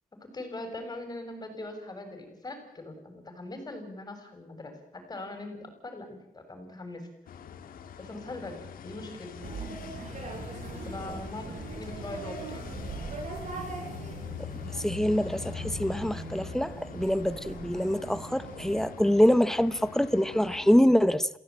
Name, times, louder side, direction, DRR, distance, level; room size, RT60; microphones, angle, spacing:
voice 1, 0.2-7.1 8.0-9.7 10.8-12.7, left 2 dB, 25° left, 7.2 m, -41 dB
sound 1, 7.3-20.8, left 8 dB, 85° left, 2.5 m, -43 dB
sound 2, 9.4-18.8, right 4 dB, 55° right, 6.7 m, -41 dB
voice 2, 14.8-21.3, equal, 5° left, 1.1 m, -25 dB
27.5 x 16.5 x 8.8 m
cardioid pair, 120°, 14 cm